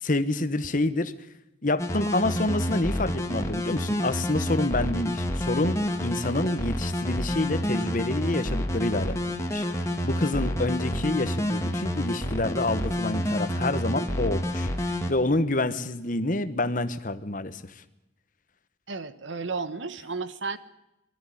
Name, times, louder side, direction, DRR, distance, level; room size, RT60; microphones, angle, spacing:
voice 1, 0.0-1.1 1.6-9.7 10.0-17.6, left 2 dB, 45° left, 11 dB, 1.1 m, -28 dB
sound 1, 1.8-15.1, equal, 15° left, 1.7 m, -29 dB
voice 2, 18.9-20.6, right 4 dB, 75° right, 13 dB, 1.1 m, -33 dB
20.5 x 13.5 x 10.0 m, 0.95 s
head